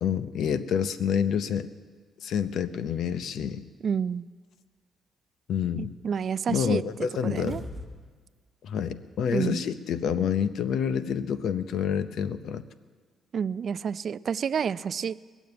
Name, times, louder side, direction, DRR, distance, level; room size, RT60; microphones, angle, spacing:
voice 1, 0.0-1.7 2.2-3.6 5.5-5.9 6.5-7.7 8.6-12.6, left 8 dB, 70° left, 13 dB, 0.7 m, -28 dB
voice 2, 3.8-4.3 5.8-6.8 7.2-7.6 9.3-9.6 13.3-15.1, right 7 dB, 55° right, 17 dB, 0.4 m, -29 dB
sound 1, 7.2-8.1 8.4-8.5, left 1 dB, 15° right, 1.6 m, -41 dB
20.5 x 7.2 x 9.5 m, 1.5 s
cardioid pair, 90°, 0 cm